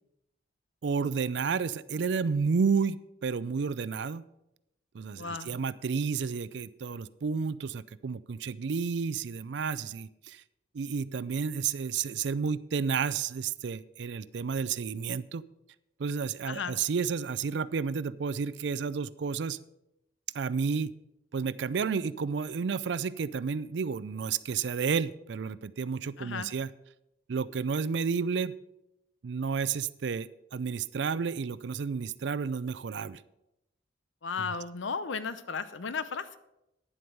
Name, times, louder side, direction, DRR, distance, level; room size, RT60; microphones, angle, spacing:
voice 1, 0.8-4.2 4.9-10.4 10.7-15.4 16.0-19.6 20.3-20.9 21.3-26.7 27.3-28.5 29.2-33.2, right 5 dB, 70° right, 17 dB, 0.4 m, -31 dB
voice 2, 5.2-5.6 16.5-16.8 26.2-26.5 34.2-36.4, left 5 dB, 85° left, 13 dB, 0.7 m, -35 dB
10.0 x 7.7 x 5.3 m, 0.86 s
head